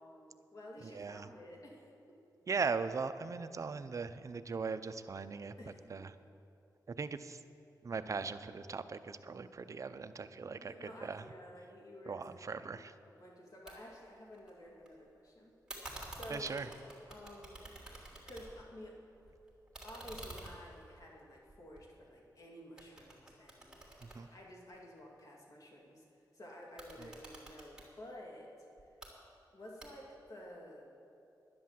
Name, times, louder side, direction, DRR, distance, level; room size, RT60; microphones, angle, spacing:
voice 1, 0.0-2.2 5.6-6.1 10.6-12.8 13.1-16.7 17.1-17.7 18.3-19.0 19.8-26.0 26.3-28.5 29.5-30.9, left 1 dB, 50° left, -1 dB, 2.4 m, -52 dB
voice 2, 0.8-1.3 2.5-5.5 5.9-6.1 7.0-7.4 7.8-10.7 11.0-11.2 12.1-12.9 16.3-16.7 24.0-24.3 27.0-27.1, right 5 dB, 45° right, 10 dB, 0.5 m, -39 dB
sound 1, 13.7-13.8 14.0-14.9 15.7-18.7 19.1-22.3 22.8-25.0 26.6-27.9 28.8-29.1 29.8-30.3, right 1 dB, 10° right, 3.0 m, -50 dB
11.0 x 10.5 x 7.5 m, 2.9 s
wide cardioid pair, 105°, 7 cm